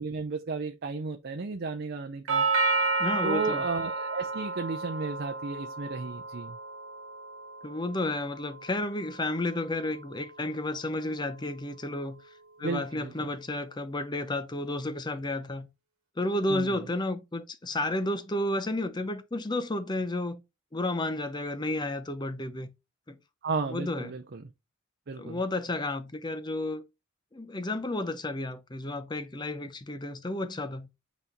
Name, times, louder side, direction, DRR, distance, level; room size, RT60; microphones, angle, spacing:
voice 1, 0.0-2.4 3.2-6.6 12.6-13.3 16.5-16.9 23.4-24.5 25.1-25.4, right 4 dB, 50° right, 0.6 m, -34 dB
Doorbell, 2.3-10.3, right 3 dB, 80° right, 1.2 m, -32 dB
voice 2, 3.0-3.6 7.6-12.2 12.6-15.7 16.2-20.4 20.7-22.7 23.1-23.2 23.7-24.1 25.2-26.8 27.3-30.9, left 1 dB, 20° left, 0.6 m, -32 dB
7.8 x 4.1 x 3.0 m
head